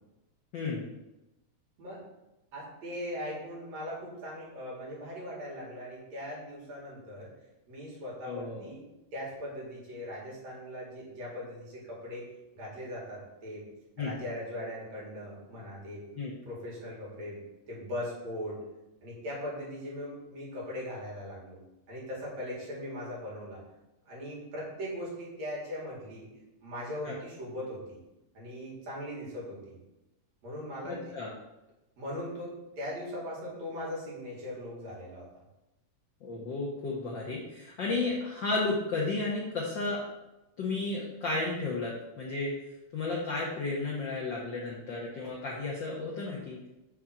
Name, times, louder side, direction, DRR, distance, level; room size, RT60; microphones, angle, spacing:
voice 1, 0.5-0.9 8.2-8.6 14.0-14.1 16.1-16.3 27.0-27.1 30.8-31.3 36.2-40.0 40.6-42.5 42.9-46.6, left 3 dB, 75° left, -3 dB, 1.0 m, -33 dB
voice 2, 2.5-7.3 7.7-8.8 9.1-12.3 12.5-13.6 14.0-16.0 16.4-17.4 17.7-18.6 19.0-21.6 21.9-23.6 24.0-26.3 26.6-27.8 28.3-29.7 30.4-31.0 32.0-35.3, equal, 65° right, -5 dB, 3.2 m, -39 dB
6.0 x 3.7 x 5.8 m, 0.97 s
omnidirectional pair, 3.4 m